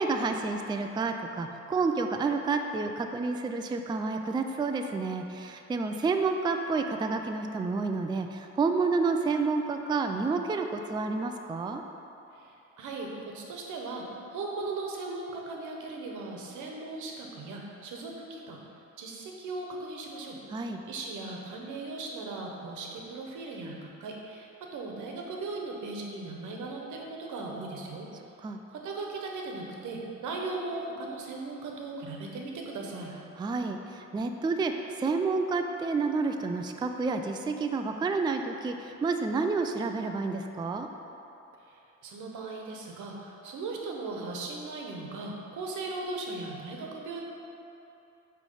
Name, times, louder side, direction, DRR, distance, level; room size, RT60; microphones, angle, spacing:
voice 1, 0.0-11.8 20.5-20.8 28.4-28.6 33.4-40.9, right 4 dB, 15° right, 5 dB, 0.3 m, -29 dB
voice 2, 12.8-13.1 13.3-18.6 19.0-20.4 20.8-28.1 28.7-33.1 41.7-47.2, right 3 dB, 80° right, 0 dB, 1.1 m, -38 dB
8.2 x 3.3 x 5.5 m, 2.8 s
cardioid pair, 90°, 30 cm